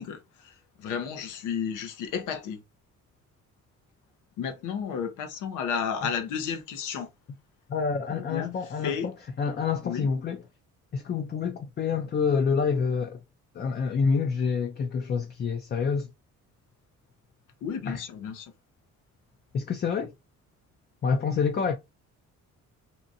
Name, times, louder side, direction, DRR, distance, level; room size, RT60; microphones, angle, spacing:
voice 1, 0.0-2.6 4.4-7.1 8.1-8.5 8.8-9.1 9.8-10.1 17.6-18.5, left 7 dB, 90° left, 0.8 m, -32 dB
voice 2, 7.7-10.4 10.9-13.2 13.5-16.1 17.9-18.0 19.5-20.1 21.0-21.8, left 5 dB, 35° left, 0.4 m, -27 dB
2.8 x 2.5 x 2.6 m
cardioid pair, 90°, 30 cm